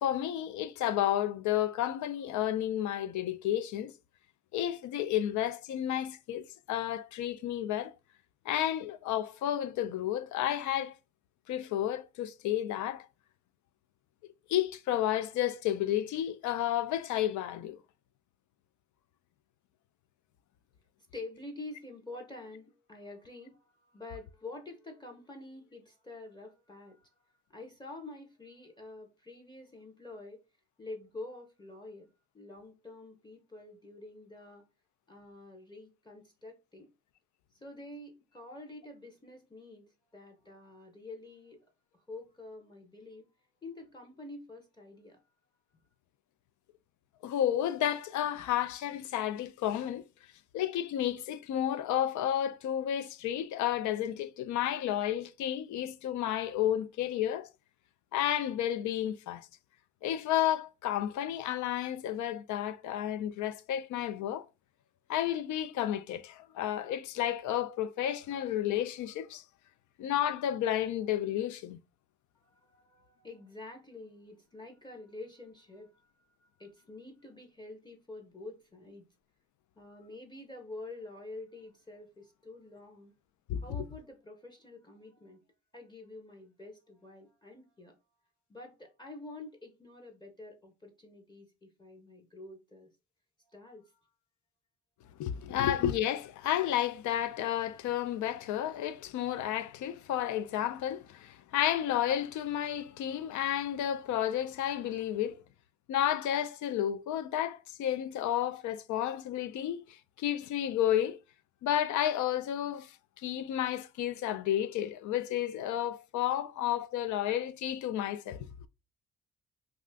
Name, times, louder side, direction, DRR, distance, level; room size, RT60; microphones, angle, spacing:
voice 1, 0.0-3.9 4.5-7.9 8.5-10.9 11.5-13.1 14.5-17.8 47.2-50.0 50.5-57.5 58.1-59.5 60.0-64.4 65.1-69.4 70.0-71.8 83.5-83.6 95.2-105.4 105.9-109.8 110.2-111.2 111.6-112.9 113.2-118.4, left 11 dB, 75° left, 0.4 m, -31 dB
voice 2, 21.1-27.1 27.5-30.4 30.8-32.1 32.3-34.7 35.1-36.9 37.5-41.6 41.9-43.3 43.6-45.2 72.4-79.1 79.8-83.1 83.6-85.4 85.7-88.0 88.5-92.9 93.5-93.9 95.3-95.5, left 2 dB, 15° left, 0.7 m, -48 dB
2.5 x 2.4 x 3.3 m
cardioid pair, 90°, 30 cm